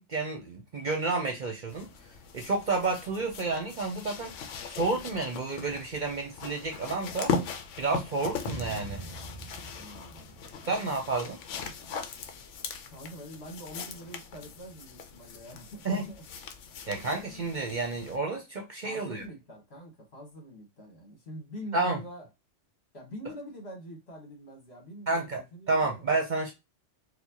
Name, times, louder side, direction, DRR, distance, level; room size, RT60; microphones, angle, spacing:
voice 1, 0.0-1.9 2.3-4.4 4.7-7.3 7.8-9.0 10.7-11.4 15.8-16.0 16.9-19.2 21.7-22.0 25.1-25.4 25.7-26.5, right 3 dB, 50° right, 0.7 m, -30 dB
sound 1, 1.7-18.2 19.2-19.3, left 5 dB, 80° left, 1.0 m, -39 dB
sound 2, 8.4-11.6, right 1 dB, 20° left, 1.4 m, -43 dB
voice 2, 9.8-10.4 12.9-16.2 16.9-17.5 18.8-22.3 22.9-26.1, equal, 60° left, 1.7 m, -45 dB
4.5 x 2.2 x 2.8 m
omnidirectional pair, 1.3 m